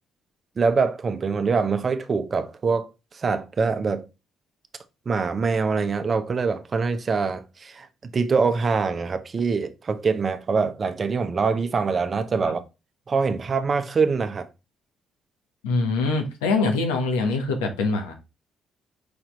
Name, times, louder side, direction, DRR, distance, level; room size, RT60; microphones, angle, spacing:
voice 1, 0.6-2.9 3.1-4.1 5.1-7.9 8.1-12.6 13.1-14.5, right 4 dB, 45° right, 0.9 m, -24 dB
voice 2, 15.6-18.1, left 3 dB, 80° left, 1.3 m, -24 dB
5.4 x 4.4 x 4.0 m
hypercardioid pair, 45°, 0 cm